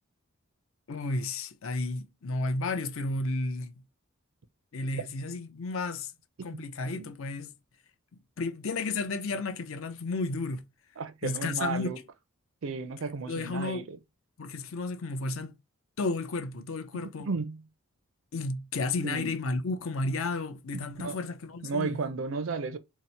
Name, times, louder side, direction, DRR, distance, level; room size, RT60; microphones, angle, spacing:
voice 1, 0.9-3.7 4.7-6.1 6.4-7.5 8.4-10.6 11.2-11.9 13.3-13.8 14.4-15.5 16.0-17.3 18.3-22.0, left 3 dB, 70° left, 0.5 m, -32 dB
voice 2, 11.0-12.0 12.6-14.0 17.2-17.6 19.0-19.3 20.7-21.2 21.6-22.8, right 4 dB, 65° right, 0.5 m, -34 dB
2.8 x 2.0 x 4.0 m
head